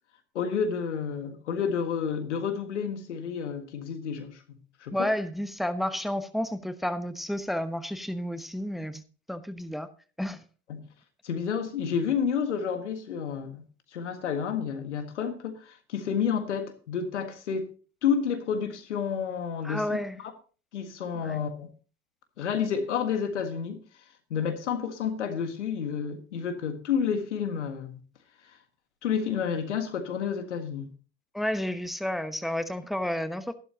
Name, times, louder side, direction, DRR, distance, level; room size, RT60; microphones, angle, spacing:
voice 1, 0.3-4.9 10.7-10.8 11.2-13.6 13.9-17.7 18.0-19.8 20.2-20.3 20.7-21.7 22.4-23.8 24.3-28.0 29.0-30.9, left 7 dB, 85° left, 1.6 m, -30 dB
voice 2, 4.9-9.0 9.3-9.9 10.2-10.4 19.6-20.2 21.1-21.4 31.3-33.5, left 1 dB, ahead, 1.0 m, -31 dB
13.5 x 11.5 x 2.8 m
hypercardioid pair, 65°, 34 cm